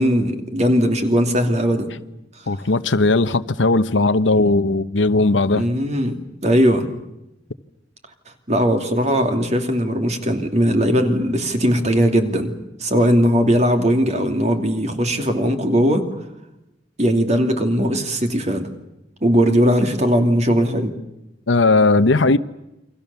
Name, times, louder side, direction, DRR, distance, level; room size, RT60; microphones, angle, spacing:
voice 1, 0.0-1.9 5.5-6.9 8.5-12.5 12.8-16.1 17.0-18.7 19.2-20.9, equal, 35° right, 2.8 m, -19 dB
voice 2, 2.5-5.6 21.5-22.4, left 3 dB, 80° left, 1.0 m, -17 dB
28.5 x 24.5 x 7.1 m
head